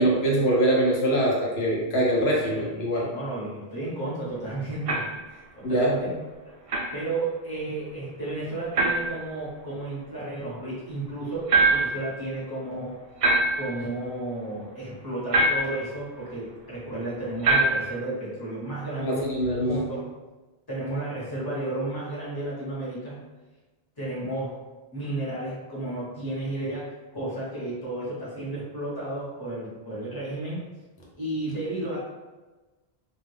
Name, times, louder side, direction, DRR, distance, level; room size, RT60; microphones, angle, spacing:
voice 1, 0.0-3.1 5.6-5.9 19.0-19.8, right 1 dB, 85° left, -4 dB, 1.0 m, -23 dB
voice 2, 3.1-6.1 6.4-6.5 6.9-13.0 13.5-20.1 20.7-23.2 24.0-24.6 24.9-30.6 31.2-32.0, right 2 dB, 25° left, -7 dB, 1.0 m, -33 dB
sound 1, 4.9-5.2 6.7-6.9 8.7-9.2 11.5-12.1 13.2-13.8 15.3-15.8 17.4-18.0, right 2 dB, 55° right, 0.4 m, -23 dB
2.3 x 2.3 x 3.2 m, 1.2 s
omnidirectional pair, 1.1 m